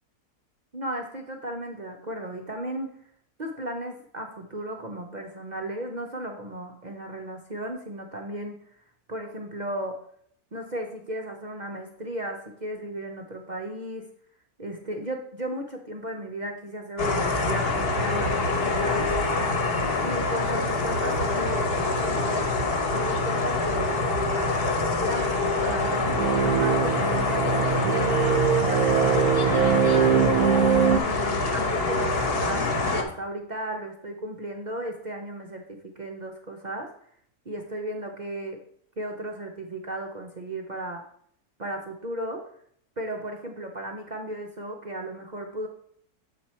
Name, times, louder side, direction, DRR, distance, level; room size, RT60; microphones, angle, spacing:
voice 1, 0.7-3.0 3.4-8.6 9.1-10.0 10.5-14.1 14.6-19.1 20.0-22.5 22.9-24.1 25.0-26.2 26.4-30.2 30.9-36.9 37.5-38.6 39.0-41.1 41.6-42.5 43.0-45.7, right 1 dB, 50° right, 2 dB, 0.5 m, -35 dB
sound 1, 17.0-33.0, left 3 dB, 45° left, 1.1 m, -25 dB
sound 2, 25.7-31.0, right 8 dB, 75° right, 1.0 m, -23 dB
7.4 x 4.5 x 4.2 m, 0.64 s
omnidirectional pair, 1.6 m